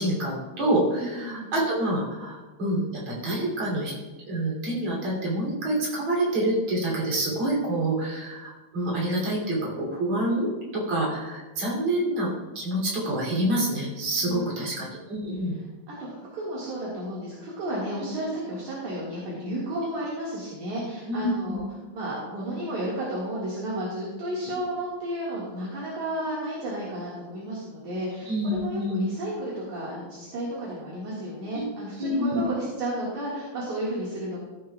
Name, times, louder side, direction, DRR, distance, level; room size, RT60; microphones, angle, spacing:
voice 1, 0.0-3.9 4.3-12.3 12.6-15.6 18.0-18.1 21.1-21.6 28.3-29.0 31.5-31.7 32.0-32.4, right 1 dB, 40° right, -5 dB, 3.8 m, -27 dB
voice 2, 1.0-1.5 14.2-14.8 16.0-21.6 21.9-34.4, right 1 dB, 60° right, -7 dB, 3.0 m, -32 dB
15.0 x 9.5 x 2.4 m, 1.2 s
omnidirectional pair, 4.1 m